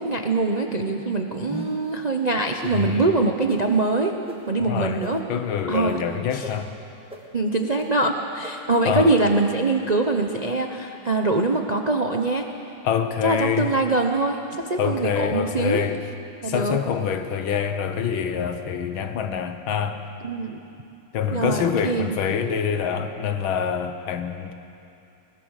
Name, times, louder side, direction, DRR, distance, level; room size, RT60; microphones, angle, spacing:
voice 1, 0.0-4.1 4.5-5.2 5.7-6.0 6.3-6.5 7.3-12.5 13.2-15.8 16.4-16.8 20.2-20.6 21.3-22.1, right 3 dB, 50° right, 3 dB, 0.4 m, -23 dB
sound 1, 1.4-1.9 2.6-2.8 3.5-3.6 4.3-4.4 5.0-5.1 5.7-5.8 6.4-6.5 7.1-7.2 7.8-7.9 8.4-8.5, equal, 5° right, 1.6 m, -35 dB
voice 2, 2.7-3.2 4.6-5.0 5.3-6.7 8.9-9.1 12.8-13.7 14.8-16.0 16.4-20.0 21.1-24.5, left 7 dB, 75° left, 8 dB, 1.9 m, -25 dB
22.0 x 20.0 x 6.5 m, 2.7 s
omnidirectional pair, 2.3 m